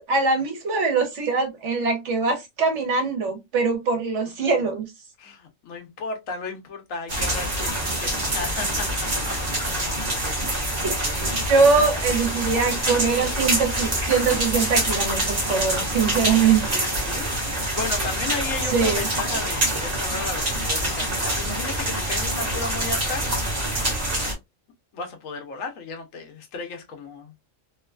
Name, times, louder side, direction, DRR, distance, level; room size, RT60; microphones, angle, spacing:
voice 1, 0.1-4.9 10.8-10.9 11.4-16.8 18.7-19.1, right 5 dB, 70° right, 1.2 m, -22 dB
voice 2, 5.2-9.1 16.7-23.2 24.9-27.3, left 4 dB, 90° left, 1.2 m, -34 dB
sound 1, 7.1-24.3, right 1 dB, 35° right, 1.0 m, -26 dB
3.0 x 2.2 x 2.3 m
omnidirectional pair, 1.3 m